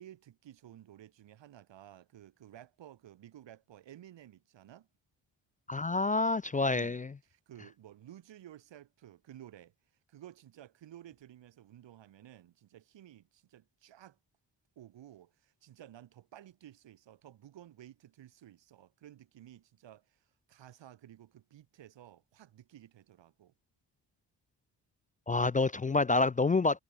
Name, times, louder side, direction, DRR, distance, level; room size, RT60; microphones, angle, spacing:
voice 1, 0.0-4.9 6.7-7.0 7.3-9.7 10.1-14.2 14.8-23.5, right 12 dB, 85° right, 3.7 m, -54 dB
voice 2, 5.7-7.1 25.3-26.8, left 3 dB, 20° left, 0.4 m, -28 dB
cardioid pair, 110°, 43 cm